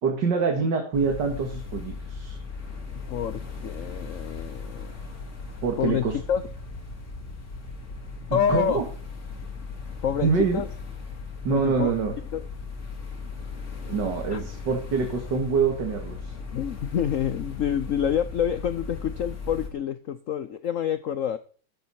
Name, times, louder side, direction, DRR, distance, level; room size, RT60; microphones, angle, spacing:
voice 1, 0.0-2.4 5.6-6.2 8.3-8.8 10.2-10.6 11.4-12.1 13.9-16.3, right 5 dB, 60° right, 3 dB, 2.4 m, -25 dB
sound 1, 0.9-19.7, left 4 dB, 35° left, 2.4 m, -37 dB
voice 2, 3.1-4.9 5.8-6.4 8.3-8.8 10.0-10.7 11.5-11.9 12.3-12.4 14.3-14.4 16.5-21.4, left 8 dB, 80° left, 13 dB, 0.7 m, -27 dB
12.5 x 7.8 x 4.2 m, 0.42 s
omnidirectional pair, 2.2 m